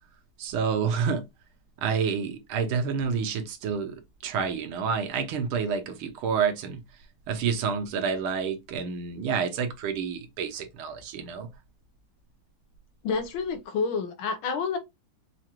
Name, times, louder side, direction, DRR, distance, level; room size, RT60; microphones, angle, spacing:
voice 1, 0.4-1.2 1.8-6.8 7.3-11.5, right 6 dB, 75° right, 1.7 m, -29 dB
voice 2, 13.0-14.8, left 5 dB, 75° left, 1.6 m, -29 dB
6.1 x 2.5 x 2.9 m
omnidirectional pair, 2.4 m